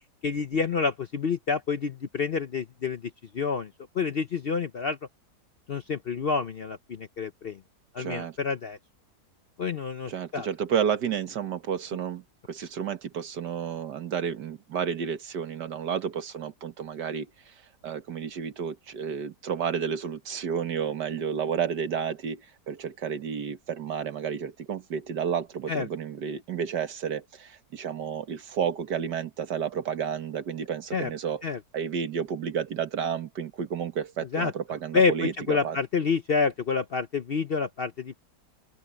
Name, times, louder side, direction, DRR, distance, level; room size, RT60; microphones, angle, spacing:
voice 1, 0.2-3.0 3.3-3.7 3.9-5.0 5.7-7.6 7.9-8.8 9.6-10.5 25.7-25.9 30.9-31.1 31.4-31.6 34.3-34.5 34.9-38.3, left 5 dB, 55° left, 0.7 m, -28 dB
voice 2, 8.0-8.4 10.1-17.6 17.8-31.4 31.7-35.8, right 7 dB, 85° right, 2.0 m, -31 dB
open air
omnidirectional pair, 1.8 m